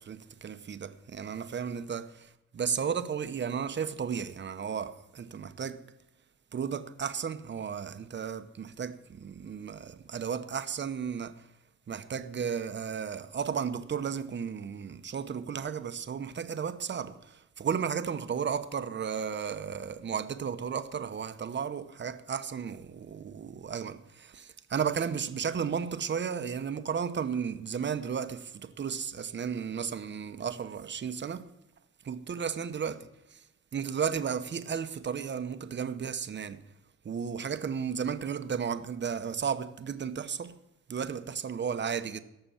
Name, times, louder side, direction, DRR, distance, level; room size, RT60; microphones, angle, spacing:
voice 1, 0.0-5.8 6.5-11.5 11.9-31.5 32.0-33.4 33.7-36.6 37.0-40.5 40.9-42.2, right 7 dB, 35° right, 1.0 m, -34 dB
17.0 x 6.9 x 7.2 m
cardioid pair, 90°, 30 cm